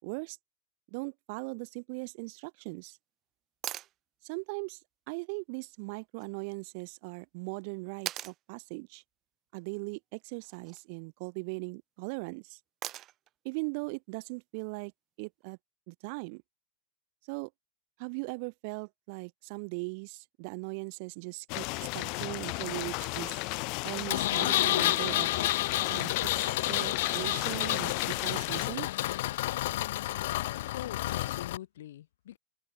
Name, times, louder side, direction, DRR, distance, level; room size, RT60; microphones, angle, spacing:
voice 1, 0.0-0.4 0.9-3.0 4.2-4.8 5.1-9.0 9.5-12.6 13.4-14.9 15.2-15.6 15.9-16.4 17.3-17.5 18.0-23.4 23.8-25.3 25.9-28.9, right 32 dB, 45° right, 4.5 m, -39 dB
sound 1, 3.6-3.9 6.2-6.3 8.1-8.4 10.4-10.8 12.8-13.3 15.4-15.5, right 14 dB, 30° right, 3.8 m, -39 dB
sound 2, 21.5-28.7, left 31 dB, 40° left, 3.1 m, -35 dB
Engine, 24.1-31.6, left 16 dB, 65° left, 1.6 m, -30 dB
voice 2, 30.6-32.4, left 12 dB, 85° left, 6.5 m, -44 dB
supercardioid pair, 165°, 0 cm